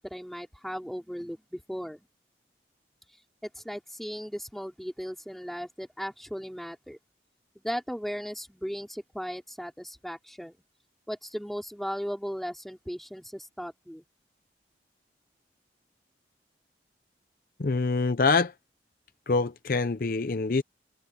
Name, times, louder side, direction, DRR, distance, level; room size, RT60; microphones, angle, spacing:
voice 1, 0.0-2.1 3.4-7.0 7.6-10.6 11.1-14.0, equal, ahead, 3.9 m, -37 dB
voice 2, 17.6-18.5 19.3-20.6, left 4 dB, 50° left, 0.5 m, -25 dB
head